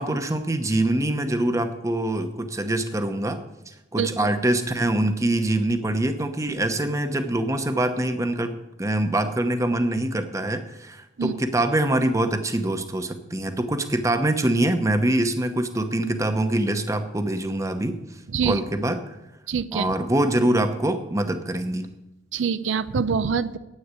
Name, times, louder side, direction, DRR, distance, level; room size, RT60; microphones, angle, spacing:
voice 1, 0.0-3.4 3.7-18.0 18.4-19.0 19.7-21.9, right 1 dB, 15° right, 8 dB, 0.9 m, -24 dB
voice 2, 19.5-19.9 22.3-23.6, right 6 dB, 80° right, 13 dB, 0.5 m, -24 dB
9.7 x 8.7 x 8.2 m, 0.97 s
head